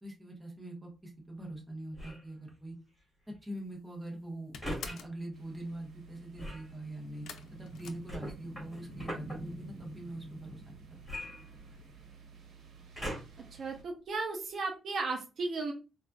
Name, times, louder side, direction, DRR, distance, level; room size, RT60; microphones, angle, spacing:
voice 1, 0.0-2.7 3.4-7.3 7.6-10.8, right 1 dB, 10° right, -1 dB, 1.1 m, -43 dB
sound 1, 1.9-2.3 4.6-5.0 6.4-6.7 8.1-9.4 11.0-12.0 12.9-13.5 14.2-14.3, equal, 10° left, 1.8 m, -40 dB
sound 2, 3.5-3.9 4.2-5.2 7.3-8.7 9.0-9.7 10.0-10.1 10.4-10.5, left 6 dB, 85° left, 0.5 m, -48 dB
sound 3, 5.3-13.8, right 2 dB, 90° right, 0.9 m, -50 dB
voice 2, 13.6-15.7, right 3 dB, 60° right, 2 dB, 0.6 m, -35 dB
4.0 x 2.5 x 2.2 m, 0.31 s
cardioid pair, 135°, 0 cm